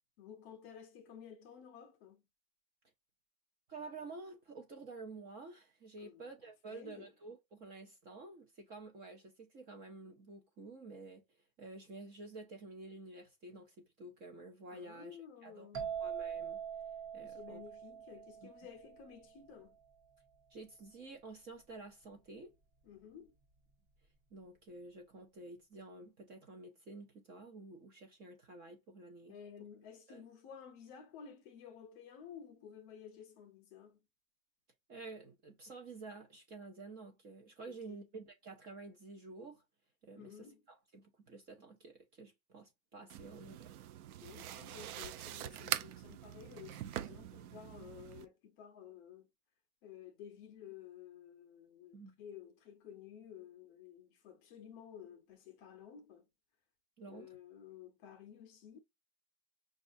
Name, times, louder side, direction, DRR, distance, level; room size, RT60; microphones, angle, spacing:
voice 1, 0.2-2.2 6.0-6.3 6.7-7.1 14.7-16.0 17.2-19.8 22.8-23.3 29.3-34.0 37.7-38.0 40.1-40.6 44.2-49.3 49.8-56.3 57.1-58.8, left 8 dB, 30° left, 0.6 m, -53 dB
voice 2, 3.7-11.2 11.6-15.7 16.0-16.6 17.1-17.6 18.4-18.5 20.5-22.5 24.3-29.4 30.1-30.2 34.9-39.6 40.0-43.7 51.9-52.2 57.0-57.3, right 3 dB, 25° right, 0.5 m, -51 dB
sound 1, 15.7-19.4, right 8 dB, 50° right, 1.1 m, -43 dB
sound 2, 43.1-48.2, right 12 dB, 90° right, 0.6 m, -43 dB
5.3 x 2.4 x 2.5 m
supercardioid pair, 170°, 43 cm